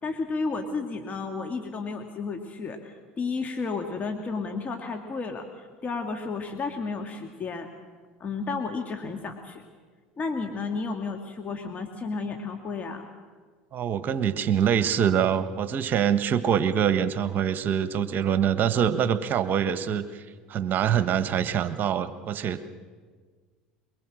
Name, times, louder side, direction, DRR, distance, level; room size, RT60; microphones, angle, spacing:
voice 1, 0.0-7.7 8.2-9.6 10.2-13.1, left 4 dB, 30° left, 4 dB, 2.1 m, -32 dB
voice 2, 13.7-22.7, right 8 dB, 40° right, 12 dB, 1.3 m, -25 dB
23.0 x 22.5 x 6.4 m, 1.5 s
hypercardioid pair, 75°, 5 cm